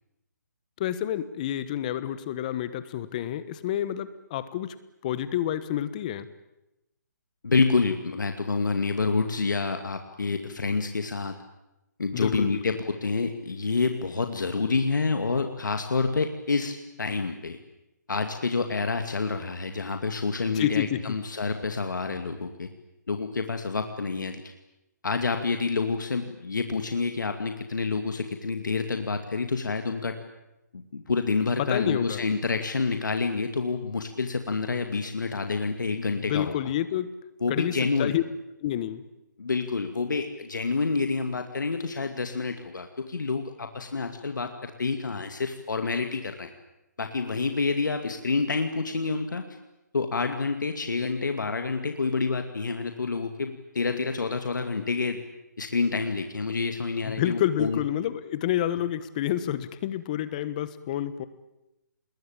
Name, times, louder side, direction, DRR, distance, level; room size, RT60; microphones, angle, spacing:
voice 1, 0.8-4.7 5.0-6.3 12.1-12.6 20.5-21.2 31.6-32.2 36.1-37.1 37.5-37.7 38.0-38.2 38.6-39.0 57.0-61.3, left 11 dB, 25° left, 15 dB, 1.3 m, -29 dB
voice 2, 7.4-11.4 12.0-17.6 18.1-22.7 23.1-24.4 25.0-30.2 30.7-36.5 37.4-38.1 39.4-46.5 47.0-49.4 49.9-55.2 55.6-57.8, left 4 dB, 85° left, 6 dB, 2.4 m, -28 dB
26.5 x 21.5 x 8.9 m, 0.93 s
hypercardioid pair, 165°, 10 cm